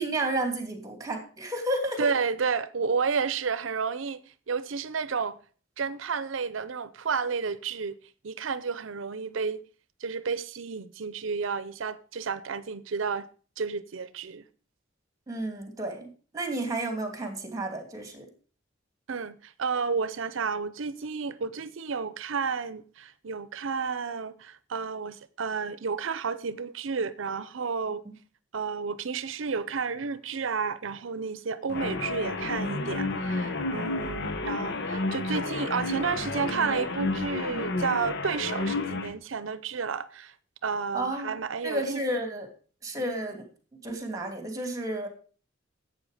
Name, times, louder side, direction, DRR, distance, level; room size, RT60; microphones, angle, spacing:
voice 1, 0.0-2.1 15.3-18.3 28.0-28.1 40.9-41.4 41.6-42.5 42.8-43.4 43.8-45.1, right 1 dB, 20° right, 2.5 m, -32 dB
voice 2, 2.0-4.2 4.5-5.4 5.8-8.0 8.2-9.6 10.0-13.3 13.6-14.4 19.1-28.0 28.5-40.3 40.6-42.0, right 5 dB, 85° right, 0.6 m, -31 dB
sound 1, 31.7-39.1, left 3 dB, 60° left, 1.0 m, -31 dB
11.5 x 8.2 x 4.9 m
head